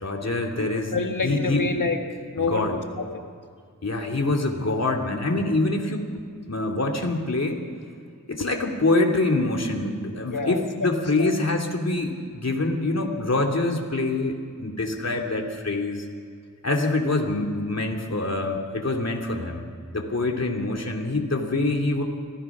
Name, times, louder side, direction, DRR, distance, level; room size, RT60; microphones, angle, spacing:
voice 1, 0.0-0.9 1.2-1.7 2.4-2.8 3.8-6.1 6.4-7.6 8.3-16.0 16.6-19.7 19.9-22.0, left 2 dB, 55° left, 1 dB, 2.8 m, -25 dB
voice 2, 0.6-2.0 2.3-3.2 10.2-10.9 11.2-11.3, left 4 dB, 75° left, 4 dB, 1.7 m, -28 dB
26.0 x 17.5 x 6.1 m, 2.2 s
wide cardioid pair, 65°, 32 cm